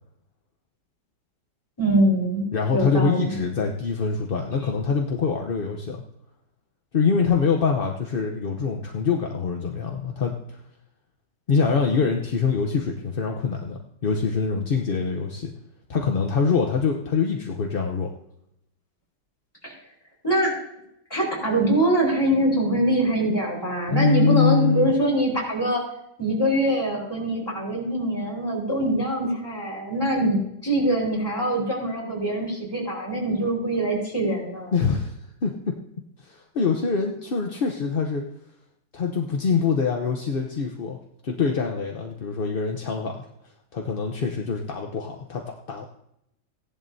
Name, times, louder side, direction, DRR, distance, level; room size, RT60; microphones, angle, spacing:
voice 1, 1.8-3.4 19.6-19.7 20.2-20.6 21.1-25.8 26.2-34.7, right 1 dB, 15° left, -4 dB, 4.3 m, -23 dB
voice 2, 2.5-6.0 6.9-10.3 11.5-15.5 15.9-18.1 23.9-24.9 34.7-35.2 35.4-35.8 36.2-38.2 38.9-41.0 41.2-43.2 43.7-45.8, left 5 dB, 45° left, 1 dB, 0.8 m, -24 dB
16.5 x 11.0 x 2.7 m, 0.78 s
omnidirectional pair, 1.9 m